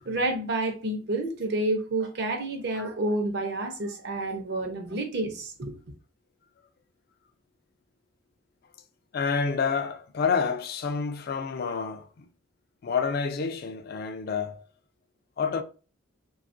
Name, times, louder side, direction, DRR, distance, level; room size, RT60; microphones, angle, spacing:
voice 1, 0.0-5.7, right 2 dB, 55° right, 0.6 m, -29 dB
voice 2, 9.1-12.3 12.8-14.7 15.4-15.6, left 5 dB, 50° left, 0.3 m, -28 dB
3.5 x 2.3 x 2.5 m
head